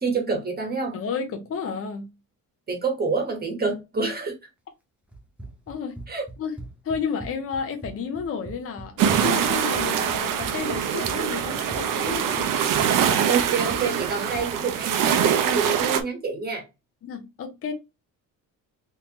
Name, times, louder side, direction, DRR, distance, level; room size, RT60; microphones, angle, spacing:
voice 1, 0.0-1.0 2.7-4.3 6.1-6.2 12.9-16.6, right 4 dB, 25° right, 1.2 m, -27 dB
voice 2, 0.9-2.1 5.7-6.0 6.4-6.6 6.8-12.5 17.0-17.7, left 6 dB, 40° left, 0.6 m, -31 dB
Run, 5.1-14.5, right 1 dB, 5° right, 0.6 m, -42 dB
sound 1, 9.0-16.0, right 8 dB, 65° right, 0.7 m, -23 dB
3.6 x 2.8 x 2.9 m
cardioid pair, 145°, 35 cm